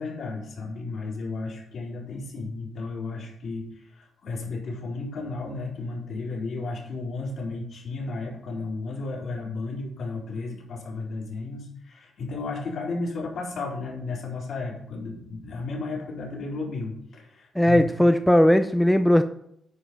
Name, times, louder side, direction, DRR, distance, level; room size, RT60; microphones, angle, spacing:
voice 1, 0.0-17.9, left 3 dB, 65° left, -3 dB, 3.7 m, -33 dB
voice 2, 17.6-19.2, left 1 dB, 5° left, 8 dB, 0.4 m, -18 dB
10.0 x 5.1 x 5.4 m, 0.72 s
cardioid pair, 120°, 0 cm